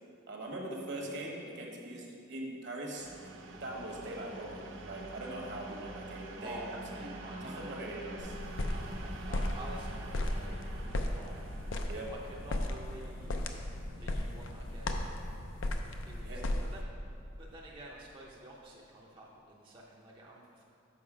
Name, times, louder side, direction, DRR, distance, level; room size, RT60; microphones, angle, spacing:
voice 1, 0.3-3.1 3.6-6.6 6.9-7.1 7.4-8.4 11.9-12.1 16.2-16.5, right 1 dB, 60° right, -1 dB, 1.2 m, -41 dB
sound 1, 2.9-14.5, right 2 dB, 75° right, 0.7 m, -47 dB
voice 2, 6.4-7.7 8.7-11.6 12.1-13.5 13.9-15.0 16.0-20.6, right 1 dB, 25° right, -4 dB, 0.6 m, -49 dB
sound 2, 8.2-16.8, left 1 dB, 75° left, 0.5 m, -36 dB
7.1 x 5.6 x 4.9 m, 2.5 s
head